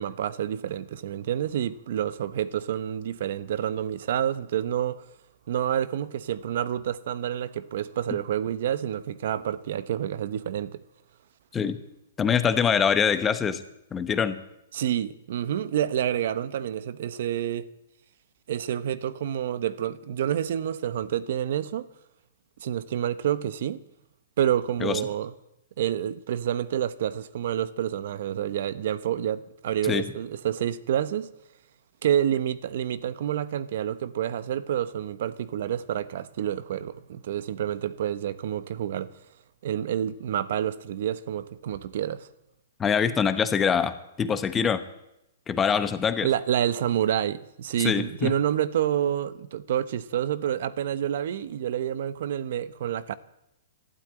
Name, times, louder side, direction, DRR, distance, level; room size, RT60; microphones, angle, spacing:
voice 1, 0.0-5.0 5.5-10.8 14.7-17.7 18.5-21.9 22.6-23.8 24.4-25.3 25.8-31.3 32.0-39.1 39.6-42.3 46.2-53.1, right 10 dB, 60° right, 0.9 m, -28 dB
voice 2, 12.2-13.6 13.9-14.4 24.8-25.0 29.9-30.1 42.8-44.8 45.5-46.3 47.8-48.3, left 7 dB, 15° left, 0.9 m, -24 dB
12.5 x 12.0 x 8.9 m
hypercardioid pair, 155°, 0 cm